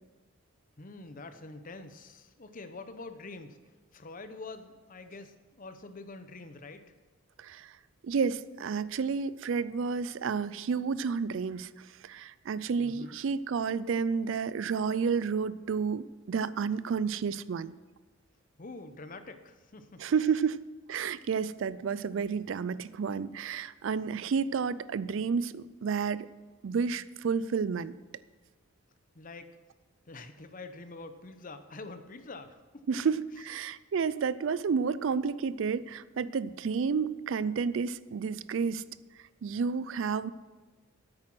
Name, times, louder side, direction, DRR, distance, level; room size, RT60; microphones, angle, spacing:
voice 1, 0.8-3.6 3.9-6.8 12.8-13.2 18.6-20.1 29.1-29.6 30.1-32.9, left 3 dB, 40° left, 9 dB, 0.8 m, -46 dB
voice 2, 7.4-7.7 8.0-17.7 20.0-26.3 26.6-27.9 32.9-38.8 39.4-40.3, right 5 dB, 65° right, 17 dB, 0.4 m, -31 dB
9.9 x 8.8 x 6.1 m, 1.3 s
head